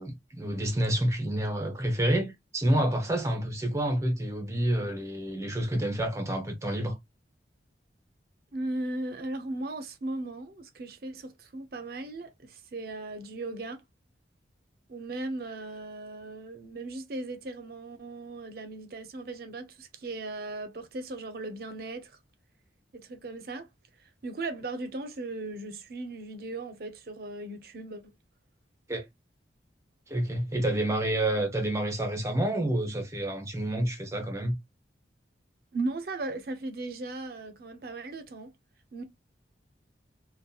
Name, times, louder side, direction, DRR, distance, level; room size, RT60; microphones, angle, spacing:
voice 1, 0.0-7.0 28.9-29.1 30.1-34.5, right 1 dB, 15° right, 0.7 m, -28 dB
voice 2, 8.5-13.8 14.9-22.2 22.9-23.7 24.2-28.0 35.7-38.5 38.9-39.0, right 2 dB, 55° right, 0.6 m, -37 dB
2.7 x 2.2 x 2.3 m
head